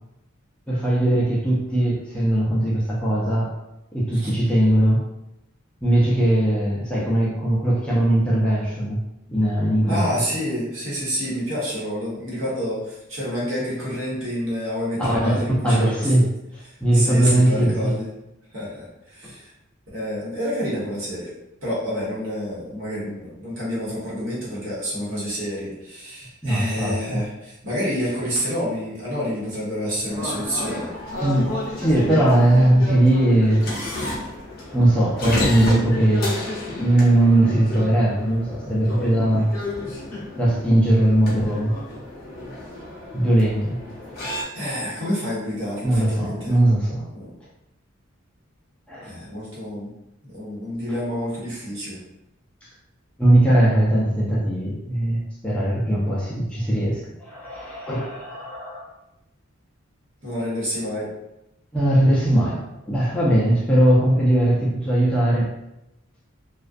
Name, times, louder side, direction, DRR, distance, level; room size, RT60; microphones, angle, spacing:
voice 1, 0.7-3.5 3.9-5.0 5.8-9.0 9.3-10.0 15.0-16.3 16.8-17.9 19.2-19.3 26.4-27.3 31.2-33.7 34.7-36.3 36.6-39.5 40.4-41.7 43.1-43.8 45.8-47.1 48.9-49.1 53.2-58.9 61.7-65.5, right 1 dB, 5° left, -6 dB, 0.4 m, -19 dB
voice 2, 9.9-16.1 16.9-18.1 18.5-19.5 19.9-21.3 21.6-30.9 33.9-34.1 44.5-46.5 47.1-47.3 49.0-49.9 50.2-52.0 60.2-61.1, equal, 65° right, -7 dB, 1.1 m, -28 dB
sound 1, 30.1-44.4, left 1 dB, 45° left, 0.7 m, -31 dB
2.3 x 2.3 x 2.5 m, 0.88 s
head